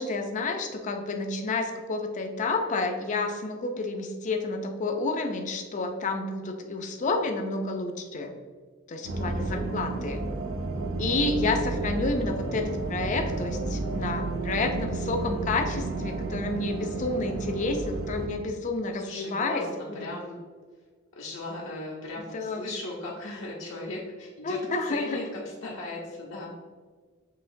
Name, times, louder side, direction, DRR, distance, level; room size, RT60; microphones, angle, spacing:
voice 1, 0.0-8.3 8.9-10.2 11.0-20.1 22.3-22.7 24.4-25.2, left 3 dB, 40° left, 4 dB, 0.4 m, -30 dB
sound 1, 9.0-18.3, right 3 dB, 85° right, 0.5 m, -32 dB
voice 2, 18.9-20.4 21.2-24.6 24.8-26.5, left 2 dB, 70° left, -4 dB, 0.7 m, -37 dB
5.7 x 2.9 x 2.6 m, 1.5 s
head